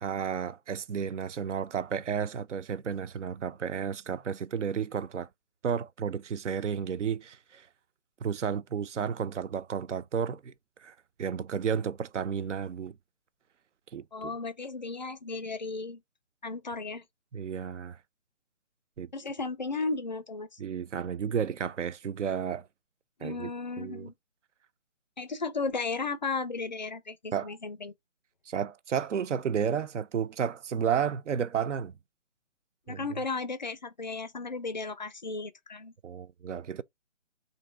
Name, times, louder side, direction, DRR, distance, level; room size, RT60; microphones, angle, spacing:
voice 1, 0.0-5.3 5.6-7.7 8.2-10.5 10.8-12.9 13.9-14.3 17.3-18.0 19.0-19.1 20.6-22.7 23.2-23.5 23.8-24.1 27.3-27.5 28.5-31.9 32.9-33.0 36.0-36.8, right 7 dB, 70° right, 0.5 m, -32 dB
voice 2, 14.1-16.0 16.4-17.0 19.1-20.6 23.2-24.1 25.2-27.9 32.9-35.9, left 4 dB, 40° left, 0.4 m, -35 dB
3.0 x 2.7 x 4.3 m
figure-of-eight pair, 155°, 37 cm